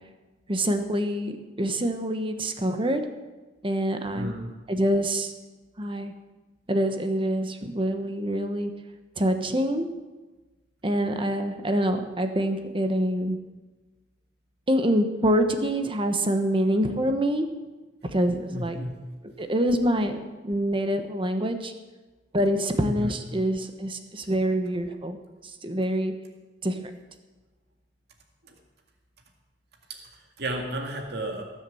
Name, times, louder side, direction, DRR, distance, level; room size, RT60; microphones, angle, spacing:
voice 1, 0.5-3.0 3.6-4.3 4.7-5.3 5.8-6.1 6.7-8.7 9.2-9.9 10.8-13.4 14.7-17.5 18.1-18.8 19.4-20.2 20.4-21.7 22.3-25.2 25.6-26.1 26.6-26.9, equal, 30° right, 7 dB, 1.3 m, -25 dB
voice 2, 4.1-4.5 18.5-19.0 22.8-23.2 28.4-28.6 29.9-31.4, right 1 dB, 65° right, 2 dB, 2.1 m, -33 dB
19.0 x 7.5 x 7.8 m, 1.2 s
head